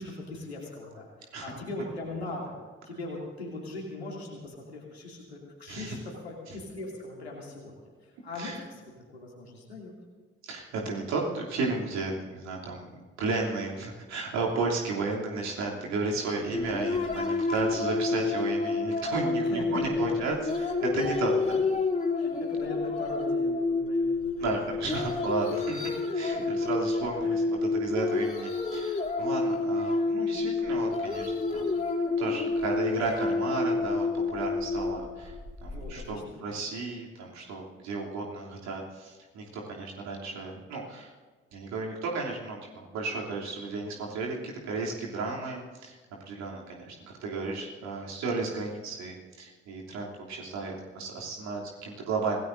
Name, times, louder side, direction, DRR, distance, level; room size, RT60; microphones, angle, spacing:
voice 1, 0.0-2.6 2.8-7.7 8.0-8.8 9.1-9.9 19.4-20.3 22.2-24.4 27.2-27.4 35.6-36.5, left 2 dB, 90° left, -3 dB, 2.8 m, -40 dB
voice 2, 10.4-21.6 24.4-31.7 32.2-35.3 35.6-41.1 41.5-46.0 46.3-52.4, right 3 dB, 60° right, -2 dB, 3.1 m, -33 dB
sound 1, 16.5-36.1, left 3 dB, 25° left, 3.2 m, -29 dB
25.0 x 18.0 x 2.7 m, 1.4 s
figure-of-eight pair, 40°, 31 cm